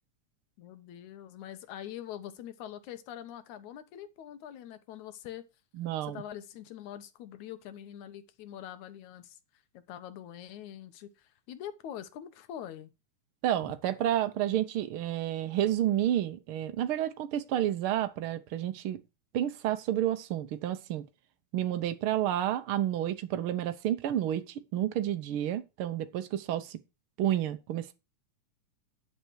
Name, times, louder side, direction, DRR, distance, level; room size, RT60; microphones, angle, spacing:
voice 1, 0.6-5.4 6.0-9.4 9.9-12.9 13.6-13.7, left 11 dB, 70° left, 2.5 m, -44 dB
voice 2, 5.8-6.2 13.4-19.0 19.3-21.0 21.5-26.8 27.2-27.9, right 11 dB, 80° right, 1.2 m, -30 dB
9.9 x 7.8 x 4.7 m
omnidirectional pair, 3.6 m